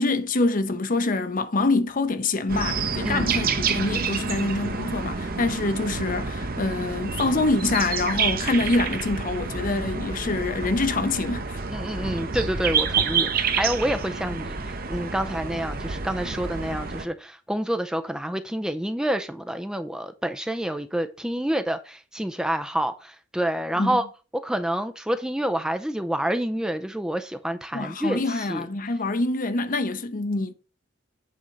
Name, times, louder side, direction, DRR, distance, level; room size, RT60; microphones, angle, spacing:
voice 1, 0.0-11.6 23.8-24.0 27.7-30.5, left 2 dB, 45° left, 0.7 m, -25 dB
sound 1, 2.5-17.0, right 5 dB, 45° right, 0.9 m, -28 dB
voice 2, 11.7-24.0 24.3-28.7, right 1 dB, 5° right, 0.4 m, -28 dB
8.6 x 4.3 x 5.1 m
head